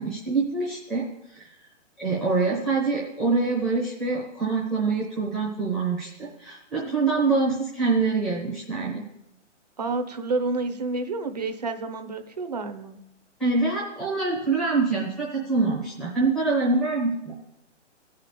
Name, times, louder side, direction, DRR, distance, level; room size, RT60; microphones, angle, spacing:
voice 1, 0.0-1.5 2.0-9.0 13.4-17.3, right 3 dB, ahead, -8 dB, 0.8 m, -25 dB
voice 2, 9.8-13.0, right 3 dB, 35° right, 8 dB, 0.8 m, -29 dB
16.5 x 5.8 x 8.2 m, 0.84 s
hypercardioid pair, 180°, 37 cm